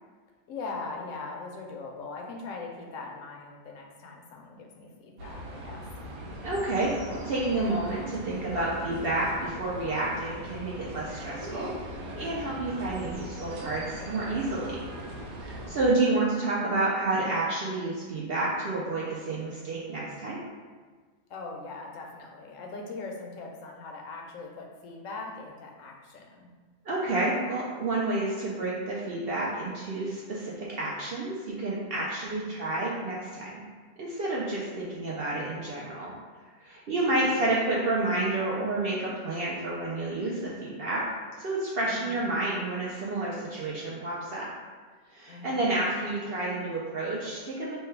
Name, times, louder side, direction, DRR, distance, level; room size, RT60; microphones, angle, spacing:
voice 1, 0.5-5.8 15.6-15.9 16.6-16.8 21.3-26.5 32.4-32.9 37.0-37.6 41.8-42.4 45.2-46.3, left 3 dB, 75° left, 0 dB, 0.9 m, -41 dB
sound 1, 5.2-15.7, equal, 90° right, 1.1 m, -40 dB
voice 2, 6.4-11.7 12.2-14.8 15.4-20.4 26.8-33.6 34.0-36.1 36.6-41.0 41.4-44.5 45.1-47.8, right 2 dB, 60° right, -5 dB, 0.6 m, -30 dB
3.2 x 2.2 x 4.3 m, 1.5 s
omnidirectional pair, 1.5 m